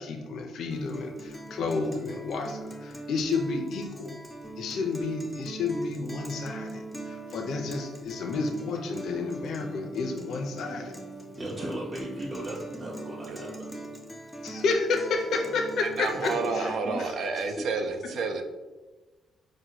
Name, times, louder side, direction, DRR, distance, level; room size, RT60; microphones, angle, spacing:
voice 1, 0.0-4.2 4.6-11.0 14.4-16.7, left 3 dB, 70° left, 3 dB, 0.5 m, -31 dB
Guitar, 0.7-16.7, right 1 dB, 5° left, 0.5 m, -42 dB
voice 2, 11.4-13.7 14.1-14.5 16.1-16.2 16.8-17.6, right 1 dB, 25° right, -6 dB, 0.7 m, -38 dB
voice 3, 15.8-18.4, right 4 dB, 70° right, 6 dB, 0.4 m, -30 dB
4.8 x 2.1 x 2.8 m, 1.2 s
cardioid pair, 90°, 0 cm